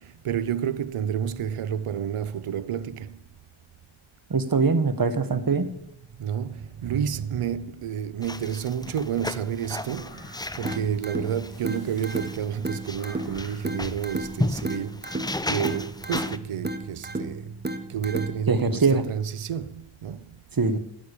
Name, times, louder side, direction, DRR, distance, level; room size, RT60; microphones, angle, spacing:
voice 1, 0.0-3.2 6.2-10.3 10.6-15.1 15.5-17.6 17.9-20.3, right 8 dB, 90° right, 0.7 m, -30 dB
voice 2, 4.3-5.7 18.5-19.0 20.5-20.8, right 4 dB, 45° right, 1.4 m, -22 dB
sound 1, 8.2-16.4, left 1 dB, 10° left, 0.5 m, -34 dB
sound 2, 9.9-10.9 11.4-12.4 13.0-13.8, left 1 dB, 45° left, 5.4 m, -49 dB
sound 3, 10.6-18.6, right 2 dB, 20° right, 1.2 m, -34 dB
9.5 x 8.6 x 8.4 m
wide cardioid pair, 70°, 49 cm